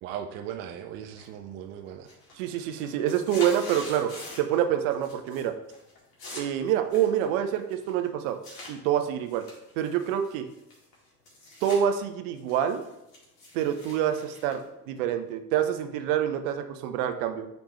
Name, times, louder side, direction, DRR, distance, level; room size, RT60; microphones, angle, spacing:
voice 1, 0.0-2.1, right 9 dB, 25° right, 6 dB, 0.3 m, -38 dB
sound 1, 1.2-1.6 1.9-4.6 4.9-5.4 5.7-8.7 9.3-11.8 12.2-15.3, left 2 dB, 45° left, 2.3 m, -45 dB
voice 2, 2.4-4.1 4.4-5.5 6.3-8.4 8.7-9.4 9.8-10.4 11.6-12.8 13.5-14.6 14.9-17.5, right 10 dB, 55° right, 7 dB, 0.8 m, -26 dB
9.1 x 3.4 x 3.2 m, 0.87 s
figure-of-eight pair, 70°, 49 cm